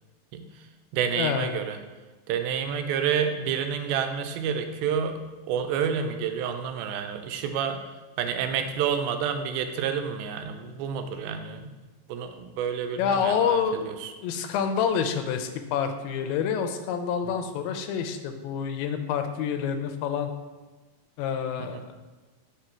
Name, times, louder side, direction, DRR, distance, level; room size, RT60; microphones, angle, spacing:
voice 1, 0.3-0.7 0.9-1.8 2.3-7.8 8.2-11.8 12.1-14.1 17.2-17.4 21.6-21.9, right 7 dB, 90° right, 6 dB, 2.4 m, -29 dB
voice 2, 1.2-1.6 13.0-13.9 14.2-20.3 21.2-21.9, left 7 dB, 90° left, 7 dB, 2.4 m, -27 dB
5.9 x 2.9 x 5.6 m, 1.3 s
omnidirectional pair, 4.2 m